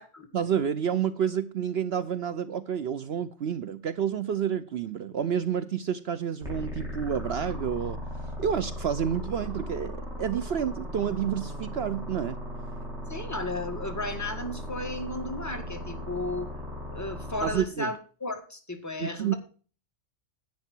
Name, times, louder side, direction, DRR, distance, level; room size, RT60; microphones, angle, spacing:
voice 1, 0.3-8.0 8.4-12.4 17.4-17.9 19.0-19.3, right 8 dB, 60° right, 0.9 m, -29 dB
sound 1, 6.4-17.6, equal, 5° right, 6.0 m, -37 dB
voice 2, 13.1-16.5 16.9-19.3, left 2 dB, 15° left, 1.8 m, -34 dB
10.5 x 8.7 x 4.5 m
omnidirectional pair, 1.3 m